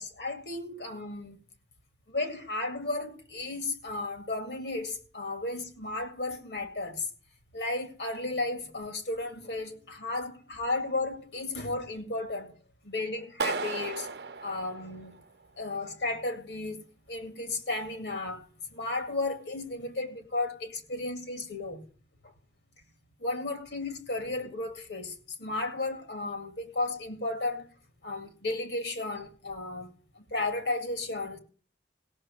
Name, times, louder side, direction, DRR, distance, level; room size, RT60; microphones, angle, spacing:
voice 1, 0.0-1.4 2.1-7.1 7.5-12.5 12.8-14.1 14.4-15.2 15.6-21.8 23.2-27.7 28.0-29.9 30.2-31.4, left 2 dB, 70° left, 2.2 m, -34 dB
Clapping, 13.4-15.4, right 4 dB, 65° right, 0.8 m, -35 dB
16.5 x 6.5 x 7.7 m
head